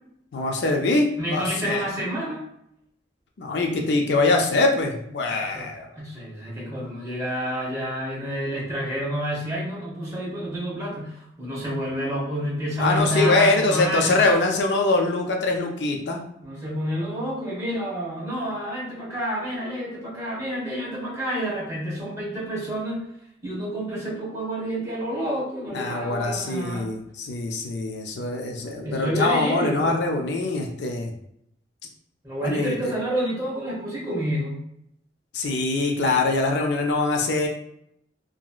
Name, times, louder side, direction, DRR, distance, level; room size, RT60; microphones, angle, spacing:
voice 1, 0.3-1.8 3.4-5.9 12.8-16.2 25.7-31.1 32.4-32.9 35.3-37.5, left 2 dB, 65° left, 2 dB, 0.4 m, -23 dB
voice 2, 1.2-2.4 5.3-5.7 5.9-14.2 16.4-23.0 23.4-26.9 28.8-29.9 32.2-34.6, equal, 20° right, -5 dB, 1.1 m, -29 dB
2.9 x 2.7 x 2.3 m, 0.74 s
head